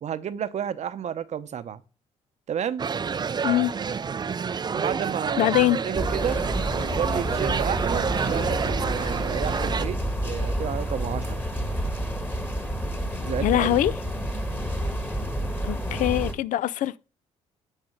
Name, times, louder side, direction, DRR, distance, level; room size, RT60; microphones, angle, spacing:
voice 1, 0.0-1.8 2.5-2.8 4.7-5.5 5.9-6.5 6.7-11.4 13.2-13.8, right 8 dB, 55° right, 0.8 m, -31 dB
sound 1, 2.8-9.9, right 6 dB, 30° right, 0.4 m, -28 dB
voice 2, 3.4-3.7 5.4-5.8 13.4-13.9 15.6-17.0, left 14 dB, 65° left, 0.4 m, -23 dB
sound 2, 5.9-16.3, equal, 15° left, 1.5 m, -29 dB
9.9 x 3.7 x 4.6 m
supercardioid pair, 65°, 14 cm